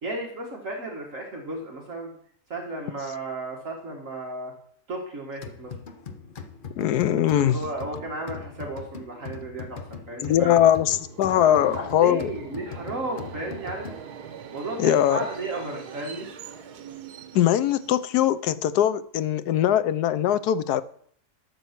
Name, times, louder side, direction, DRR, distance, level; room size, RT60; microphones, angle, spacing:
voice 1, 0.0-2.1 2.5-4.5 4.9-5.7 7.1-9.8 10.1-10.5 11.4-13.9 14.5-16.3, right 2 dB, 55° right, 2.1 m, -34 dB
sound 1, 5.4-14.3, left 5 dB, 40° left, 0.8 m, -40 dB
voice 2, 6.8-7.6 10.2-12.3 14.8-15.2 17.3-20.8, left 11 dB, 85° left, 1.2 m, -21 dB
Subway metro underground, 10.6-18.4, right 8 dB, 90° right, 1.4 m, -42 dB
12.5 x 7.1 x 5.9 m
omnidirectional pair, 1.6 m